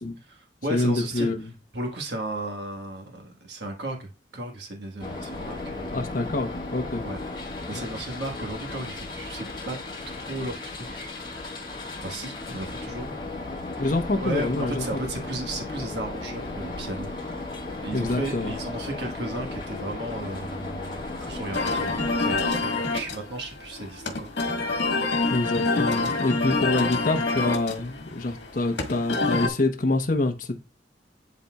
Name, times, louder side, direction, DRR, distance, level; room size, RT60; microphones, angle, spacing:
voice 1, 0.2-1.3 1.7-6.1 7.0-7.2 7.7-9.8 10.1-11.1 12.0-13.2 13.8-17.1 17.8-24.3, right 1 dB, 70° right, 1.5 m, -35 dB
voice 2, 0.7-1.5 5.9-7.0 13.8-14.9 17.9-18.5 25.3-30.6, left 2 dB, 50° left, 0.9 m, -26 dB
sound 1, 5.0-22.5, left 2 dB, 25° left, 3.0 m, -35 dB
sound 2, 21.5-29.5, left 3 dB, 80° left, 1.6 m, -27 dB
11.0 x 4.2 x 2.3 m
head